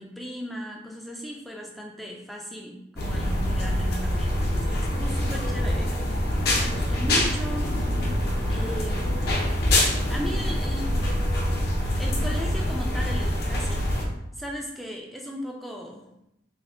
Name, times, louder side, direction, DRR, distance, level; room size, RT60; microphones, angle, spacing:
voice 1, 0.0-6.0 6.5-7.8 8.5-9.4 10.1-11.0 12.0-13.9 14.3-16.1, equal, ahead, -1 dB, 0.3 m, -37 dB
sound 1, 3.0-14.1, left 1 dB, 50° left, 0.6 m, -25 dB
3.3 x 2.1 x 3.5 m, 0.84 s
head